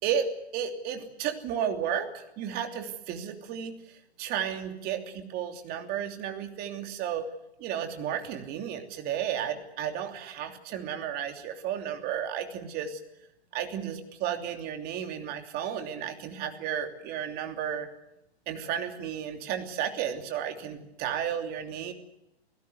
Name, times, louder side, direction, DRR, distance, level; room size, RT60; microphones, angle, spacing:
voice 1, 0.0-7.3 7.6-13.0 13.5-17.9 18.5-21.9, right 9 dB, 30° right, 6 dB, 3.0 m, -33 dB
29.5 x 16.5 x 8.1 m, 0.88 s
figure-of-eight pair, 125°, 33 cm